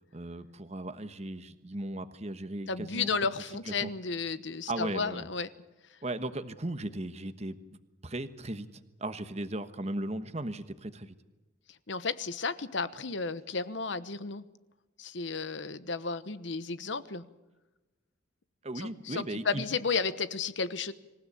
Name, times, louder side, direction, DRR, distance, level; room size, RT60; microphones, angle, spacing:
voice 1, 0.1-3.1 3.7-3.9 4.7-5.3 6.0-7.6 8.0-8.7 9.0-11.1 18.6-19.7, right 1 dB, 35° right, 10 dB, 1.2 m, -36 dB
voice 2, 2.7-5.5 5.9-6.0 11.7-14.4 15.0-17.2 18.8-20.9, left 4 dB, 65° left, 14 dB, 1.1 m, -33 dB
26.0 x 16.0 x 8.5 m, 1.1 s
head